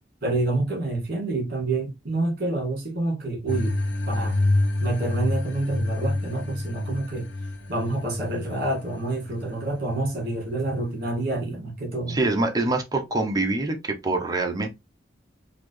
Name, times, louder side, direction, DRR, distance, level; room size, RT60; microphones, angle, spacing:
voice 1, 0.2-3.8 4.1-4.4 4.8-7.3 7.7-12.2, right 2 dB, 55° right, 2.0 m, -28 dB
sound 1, 3.5-11.5, left 2 dB, 85° left, 0.8 m, -28 dB
voice 2, 12.1-14.7, right 2 dB, 20° right, 0.8 m, -25 dB
4.1 x 2.6 x 3.1 m
head